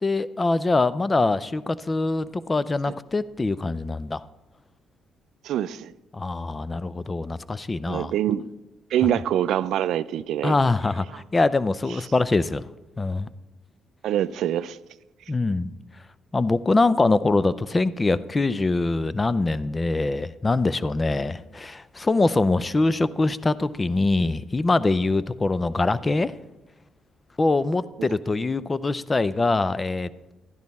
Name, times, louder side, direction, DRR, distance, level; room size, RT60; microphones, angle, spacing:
voice 1, 0.0-4.2 6.1-8.1 10.4-12.6 13.0-13.3 15.3-15.7 16.3-26.3 27.4-30.3, left 3 dB, 25° left, 0.4 m, -23 dB
voice 2, 5.4-5.9 7.9-8.4 8.9-10.6 14.0-14.8, right 11 dB, 80° right, 0.3 m, -25 dB
12.0 x 10.5 x 4.2 m
cardioid pair, 90°, 0 cm